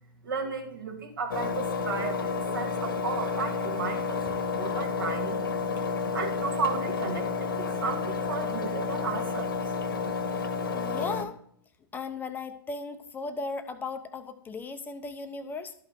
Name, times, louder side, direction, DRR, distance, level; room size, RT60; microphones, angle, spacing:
voice 1, 0.2-5.5 6.1-9.7, right 5 dB, 65° right, 3 dB, 2.1 m, -34 dB
Engine, 1.3-11.2, left 5 dB, 65° left, 1.2 m, -30 dB
voice 2, 10.7-11.4 11.9-15.8, left 4 dB, 15° left, 9 dB, 0.6 m, -36 dB
12.0 x 4.5 x 5.1 m, 0.64 s
figure-of-eight pair, 105°, 12 cm